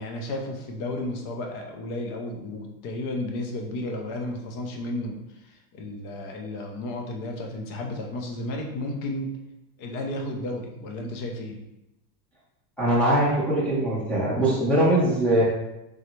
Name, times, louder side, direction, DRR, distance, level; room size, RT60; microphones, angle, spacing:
voice 1, 0.0-9.3 9.8-11.6, left 1 dB, 40° left, 2 dB, 0.6 m, -33 dB
voice 2, 12.8-15.4, right 1 dB, ahead, -7 dB, 0.7 m, -21 dB
3.9 x 3.3 x 3.0 m, 0.91 s
supercardioid pair, 170°, 49 cm